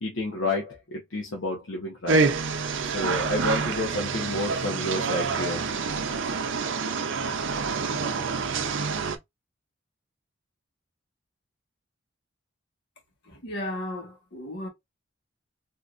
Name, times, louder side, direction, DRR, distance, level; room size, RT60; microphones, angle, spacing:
voice 1, 0.0-2.2 2.8-5.6, left 1 dB, 80° left, 0.9 m, -30 dB
sound 1, 2.1-9.2, right 4 dB, 70° right, 0.5 m, -27 dB
voice 2, 13.3-14.7, left 1 dB, 60° left, 1.5 m, -35 dB
3.6 x 2.8 x 2.4 m
head